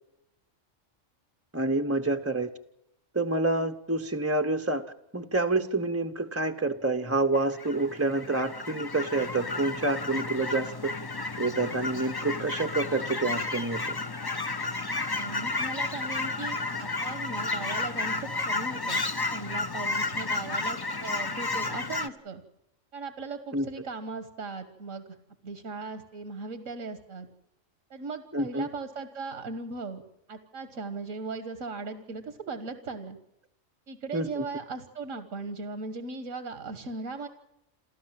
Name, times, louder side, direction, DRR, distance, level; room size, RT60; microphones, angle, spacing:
voice 1, 1.5-2.5 3.1-4.8 5.1-10.9 11.4-14.0 23.5-23.6 28.3-28.7 34.1-34.4, right 2 dB, 15° right, 6 dB, 0.7 m, -28 dB
Fowl / Chirp tweet, 7.3-22.1, left 3 dB, 25° left, 0.6 m, -32 dB
voice 2, 15.1-19.0 19.3-22.4 22.9-25.2 25.4-27.3 27.9-30.0 30.3-33.2 33.9-37.3, right 4 dB, 85° right, 9 dB, 1.8 m, -38 dB
28.5 x 14.0 x 7.5 m, 0.86 s
omnidirectional pair, 1.3 m